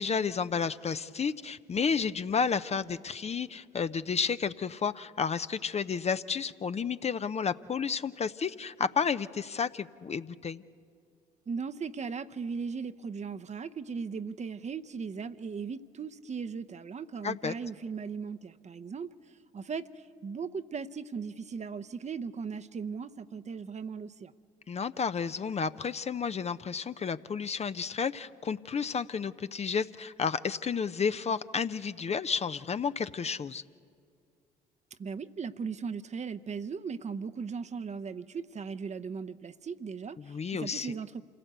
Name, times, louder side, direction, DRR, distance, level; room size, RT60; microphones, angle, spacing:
voice 1, 0.0-10.6 17.2-17.5 24.7-33.6 40.2-40.9, left 6 dB, 35° left, 12 dB, 0.6 m, -31 dB
voice 2, 11.5-19.1 19.5-24.3 35.0-41.2, right 5 dB, 35° right, 10 dB, 0.8 m, -38 dB
27.0 x 17.0 x 8.1 m, 2.3 s
hypercardioid pair, 55°, 20 cm